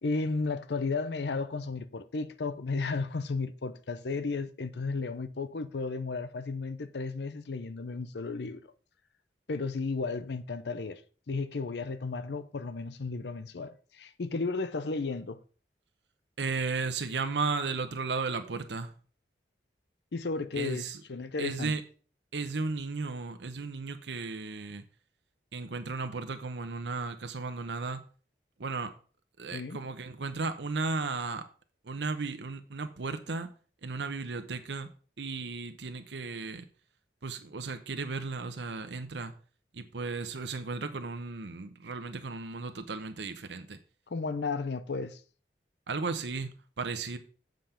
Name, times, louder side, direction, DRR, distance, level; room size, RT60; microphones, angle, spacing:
voice 1, 0.0-8.6 9.5-11.0 11.3-15.4 20.1-21.7 29.5-29.8 44.1-45.2, left 4 dB, 75° left, 0.6 m, -34 dB
voice 2, 16.4-18.9 20.5-21.0 21.4-21.8 22.3-24.8 25.5-28.0 28.6-28.9 29.4-31.5 31.8-33.5 33.8-34.9 35.2-36.6 37.2-39.3 39.7-43.8 45.9-46.5 46.8-47.2, right 4 dB, 85° right, 0.8 m, -35 dB
7.8 x 5.2 x 5.7 m
head